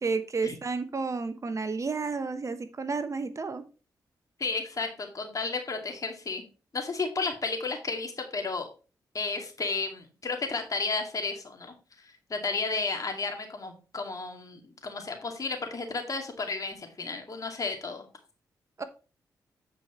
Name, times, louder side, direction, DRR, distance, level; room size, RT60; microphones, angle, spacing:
voice 1, 0.0-3.6 18.8-18.9, right 4 dB, 45° right, 11 dB, 1.0 m, -31 dB
voice 2, 4.4-6.4 6.7-8.7 9.1-11.7 12.0-18.1, left 4 dB, 50° left, 4 dB, 2.3 m, -33 dB
8.8 x 5.1 x 4.4 m, 0.34 s
cardioid pair, 60°, 8 cm